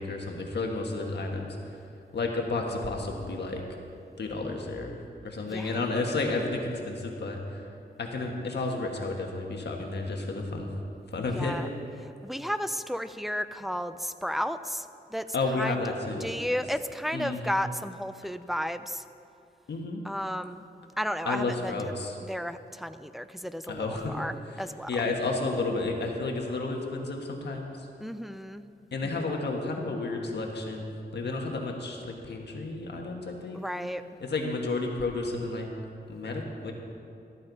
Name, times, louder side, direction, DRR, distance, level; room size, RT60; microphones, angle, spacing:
voice 1, 0.0-1.6 2.1-3.6 4.2-5.0 5.2-7.6 8.0-10.7 11.1-11.6 15.3-16.3 17.1-17.6 19.7-20.0 21.3-22.1 23.7-24.2 24.9-27.7 28.9-33.6 34.2-35.7 36.1-36.7, left 3 dB, 70° left, 1 dB, 1.5 m, -31 dB
voice 2, 5.5-5.9 11.3-11.7 12.0-14.9 15.1-15.3 15.6-19.0 20.0-20.6 21.0-21.9 22.2-24.9 28.0-28.7 29.0-29.1 33.5-34.0, equal, ahead, 11 dB, 0.5 m, -33 dB
14.0 x 13.0 x 4.1 m, 2.5 s
wide cardioid pair, 95°, 18 cm